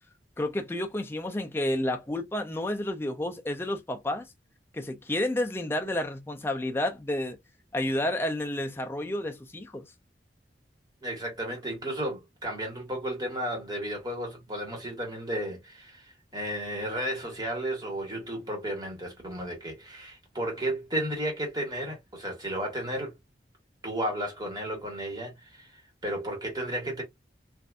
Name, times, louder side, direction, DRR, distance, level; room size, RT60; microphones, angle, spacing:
voice 1, 0.4-4.3 4.7-7.4 7.7-9.8, left 1 dB, 15° left, 0.5 m, -30 dB
voice 2, 11.0-23.1 23.8-27.0, right 1 dB, 25° right, 1.4 m, -33 dB
3.4 x 2.6 x 2.4 m
head